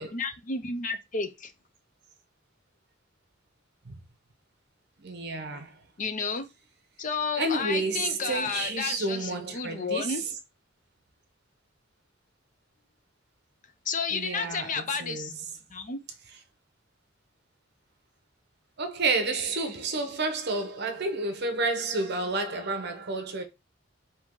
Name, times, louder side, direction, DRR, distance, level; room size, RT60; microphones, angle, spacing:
voice 1, 0.0-1.5 6.0-6.5 7.0-10.2 13.9-15.3 15.7-16.0, left 5 dB, 40° left, 0.6 m, -31 dB
voice 2, 5.0-5.8 7.4-10.2 14.1-15.4 18.8-23.4, right 3 dB, 55° right, 0.9 m, -30 dB
4.4 x 2.9 x 3.7 m
head